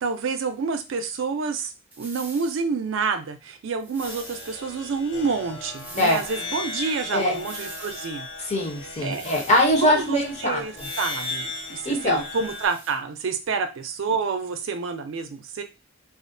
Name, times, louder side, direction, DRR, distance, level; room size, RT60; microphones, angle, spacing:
voice 1, 0.0-1.7 2.0-8.3 9.0-9.2 9.8-15.6, right 5 dB, 75° right, 7 dB, 0.4 m, -28 dB
sound 1, 1.9-2.6 3.8-4.6 5.7-6.5 7.3-8.1 9.1-9.8 10.8-11.4 12.3-13.0, right 2 dB, 10° right, 0.5 m, -42 dB
sound 2, 4.0-12.7, left 3 dB, 80° left, 1.2 m, -37 dB
voice 2, 8.4-10.9 11.8-12.2, left 1 dB, 35° left, 2 dB, 0.6 m, -22 dB
2.4 x 2.1 x 2.5 m, 0.27 s
head